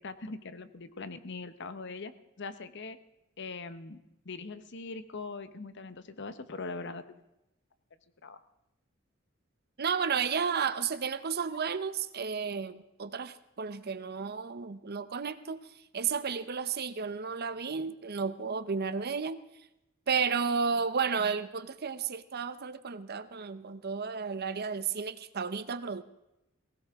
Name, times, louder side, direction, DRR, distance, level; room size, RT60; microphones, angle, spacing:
voice 1, 0.0-3.0 3.4-4.0 4.2-7.2 8.2-8.4, left 3 dB, 60° left, 12 dB, 1.0 m, -41 dB
voice 2, 9.8-15.6 15.9-19.4 20.1-26.0, right 6 dB, 50° right, 12 dB, 0.8 m, -32 dB
19.5 x 17.5 x 3.6 m, 0.89 s
head